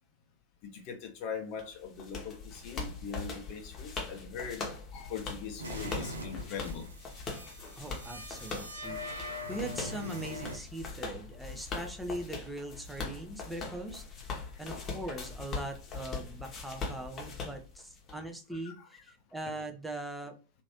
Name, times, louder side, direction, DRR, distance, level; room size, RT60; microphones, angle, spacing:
voice 1, 0.6-4.7 4.9-6.9 11.5-11.9 14.9-15.0 18.1-19.0, left 6 dB, 40° left, 4 dB, 0.5 m, -42 dB
sound 1, 1.6-18.1, left 4 dB, 25° left, 1.0 m, -41 dB
sound 2, 5.6-10.6, left 1 dB, 75° right, 0.6 m, -42 dB
voice 2, 7.8-14.0 14.6-20.3, right 1 dB, ahead, 4 dB, 0.6 m, -41 dB
2.9 x 2.5 x 2.9 m, 0.32 s
figure-of-eight pair, 90°, 0 cm